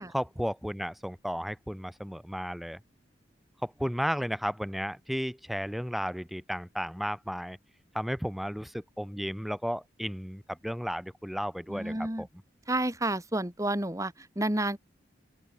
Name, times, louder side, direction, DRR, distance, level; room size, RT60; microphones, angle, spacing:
voice 1, 0.0-2.8 3.6-7.6 7.9-12.3, equal, ahead, 5.0 m, -34 dB
voice 2, 11.7-12.3 12.7-14.8, right 1 dB, 20° right, 2.4 m, -30 dB
open air
head